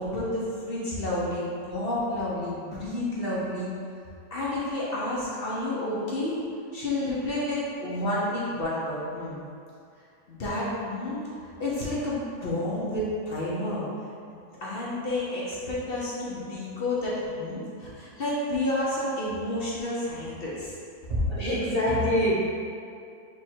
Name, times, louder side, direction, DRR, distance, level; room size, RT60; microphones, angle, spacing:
voice 1, 0.0-3.7 4.3-6.4 6.7-9.4 10.3-13.9 14.3-20.7, left 1 dB, 50° left, -8 dB, 0.8 m, -30 dB
voice 2, 21.1-22.4, left 1 dB, 85° right, -10 dB, 0.3 m, -24 dB
3.5 x 3.0 x 4.4 m, 2.5 s
omnidirectional pair, 1.7 m